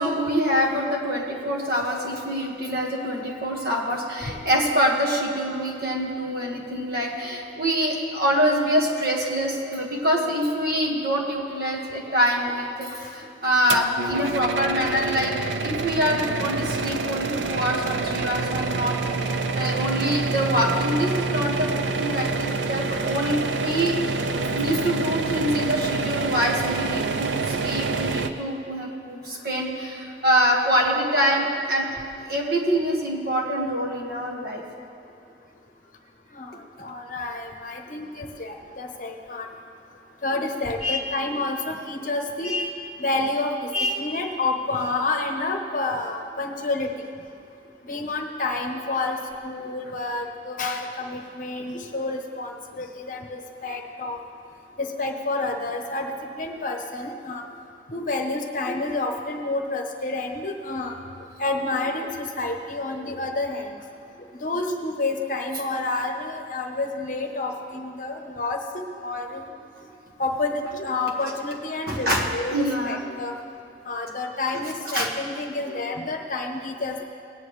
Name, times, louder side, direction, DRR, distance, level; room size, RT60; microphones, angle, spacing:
voice 1, 0.0-15.3 15.6-24.0 24.5-31.9 32.3-34.6 40.8-41.0 42.4-42.7 43.7-44.1 71.9-73.0 74.9-75.1, equal, 55° right, -1 dB, 1.8 m, -25 dB
sound 1, 13.7-28.3, right 3 dB, 90° right, 0.6 m, -27 dB
voice 2, 36.3-39.5 40.2-42.5 43.0-43.7 44.0-46.9 47.9-54.2 54.8-56.1 56.4-57.4 57.9-60.9 61.4-63.7 64.4-68.6 69.0-69.4 70.2-73.3 73.9-77.0, left 2 dB, 45° left, 3 dB, 1.0 m, -29 dB
19.0 x 9.3 x 3.2 m, 2.6 s
head